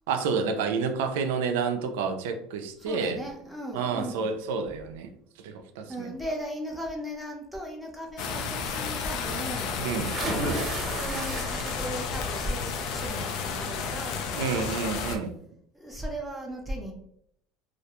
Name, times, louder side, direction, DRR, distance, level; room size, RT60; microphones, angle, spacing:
voice 1, 0.1-3.2 3.7-5.1 5.4-6.1 9.8-10.2 14.4-15.4, right 5 dB, 90° right, 6 dB, 0.4 m, -29 dB
voice 2, 2.8-4.4 5.9-14.3 15.7-16.9, equal, ahead, 0 dB, 0.6 m, -37 dB
sound 1, 8.2-15.2, left 5 dB, 65° left, 0.4 m, -32 dB
sound 2, 10.1-12.1 12.5-13.0 14.4-14.5 14.9-15.0, right 2 dB, 40° right, 0.8 m, -33 dB
2.4 x 2.1 x 2.8 m, 0.71 s
supercardioid pair, 120°, 0 cm